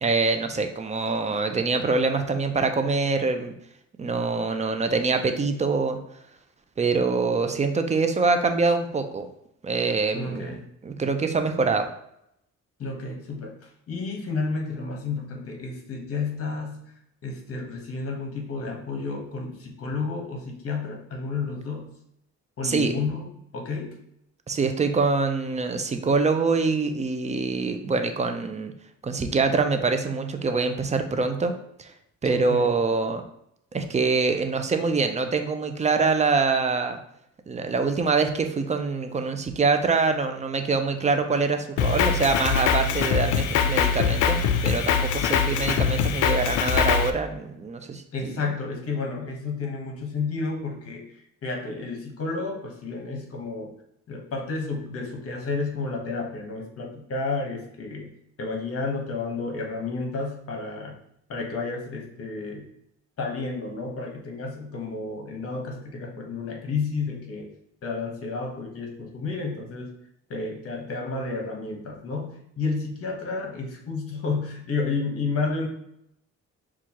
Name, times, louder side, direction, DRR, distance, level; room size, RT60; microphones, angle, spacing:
voice 1, 0.0-3.5 4.0-6.0 6.8-9.3 9.6-10.6 10.8-11.9 22.6-22.9 24.5-28.7 29.0-31.5 31.8-31.9 32.2-33.2 33.7-37.0 37.5-48.4, right 4 dB, 25° right, 7 dB, 0.5 m, -24 dB
voice 2, 10.1-10.6 12.8-13.6 13.9-16.8 17.2-21.9 22.6-23.9 32.2-32.7 48.1-53.7 54.1-58.1 58.4-61.0 61.3-62.7 63.2-67.5 67.8-69.9 70.3-75.7, left 4 dB, 50° left, 2 dB, 1.1 m, -31 dB
Drum kit, 41.8-47.1, left 7 dB, 85° left, 0.5 m, -23 dB
6.0 x 2.4 x 2.9 m, 0.76 s
cardioid pair, 90°, 30 cm